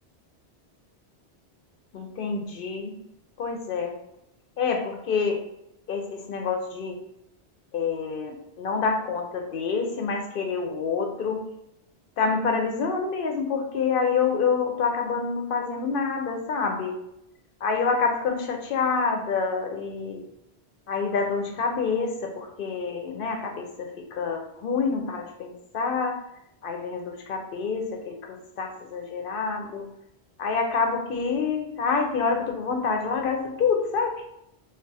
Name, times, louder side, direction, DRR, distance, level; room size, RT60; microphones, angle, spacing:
voice 1, 1.9-2.9 3.4-3.9 4.6-5.4 5.9-7.0 7.7-11.4 12.2-17.0 17.6-20.2 20.9-26.2 26.6-29.9 30.4-34.2, left 5 dB, 60° left, 3 dB, 0.7 m, -27 dB
2.4 x 2.3 x 3.9 m, 0.81 s
omnidirectional pair, 1.1 m